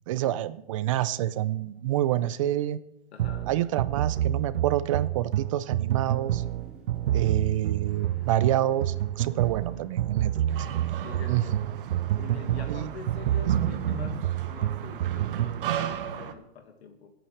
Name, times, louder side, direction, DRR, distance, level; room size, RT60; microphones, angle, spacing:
voice 1, 0.1-2.8 3.5-6.4 7.1-10.3 10.6-10.7 11.3-11.4 12.7-12.9 13.6-13.7, right 13 dB, 35° right, 16 dB, 0.4 m, -27 dB
voice 2, 3.1-3.5 7.2-7.4 11.0-11.6 12.2-17.1, left 5 dB, 90° left, 4 dB, 1.9 m, -43 dB
sound 1, 3.2-15.6, right 12 dB, 90° right, 0.5 m, -29 dB
sound 2, 5.8-14.6 14.8-15.7, right 1 dB, 5° right, 3.1 m, -54 dB
sound 3, 10.5-16.3, right 9 dB, 60° right, 1.3 m, -34 dB
26.5 x 9.0 x 3.3 m, 0.81 s
hypercardioid pair, 155°, 31 cm